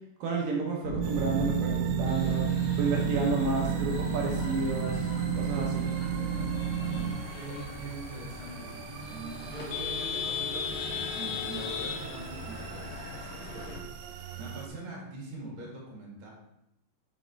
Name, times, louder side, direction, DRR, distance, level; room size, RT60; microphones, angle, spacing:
voice 1, 0.2-2.5 2.8-5.1 5.4-5.9, right 3 dB, 70° right, -2 dB, 2.4 m, -31 dB
sound 1, 0.8-7.1, right 6 dB, 55° left, 2.8 m, -30 dB
sound 2, 1.0-14.7, right 7 dB, 90° right, 2.6 m, -43 dB
sound 3, 2.1-13.8, left 7 dB, 75° left, 2.1 m, -39 dB
voice 2, 7.3-16.3, right 2 dB, 45° right, -3 dB, 2.0 m, -44 dB
7.6 x 5.1 x 3.3 m, 0.84 s
omnidirectional pair, 4.5 m